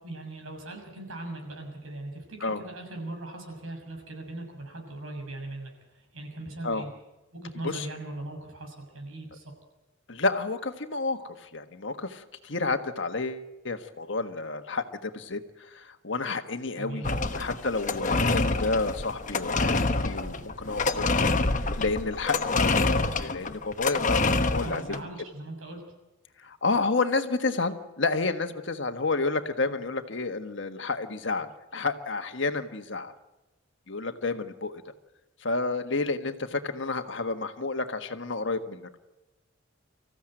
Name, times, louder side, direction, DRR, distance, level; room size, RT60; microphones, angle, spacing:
voice 1, 0.0-6.9 7.3-9.5 16.8-17.2 24.6-25.8, right 2 dB, 85° right, 3 dB, 6.8 m, -39 dB
voice 2, 10.1-17.1 17.3-25.1 26.4-33.1 33.9-34.8 35.4-39.0, left 3 dB, 60° left, 8 dB, 1.5 m, -30 dB
sound 1, 17.0-25.0, left 3 dB, 40° left, 1.1 m, -26 dB
25.0 x 15.0 x 8.9 m, 1.0 s
head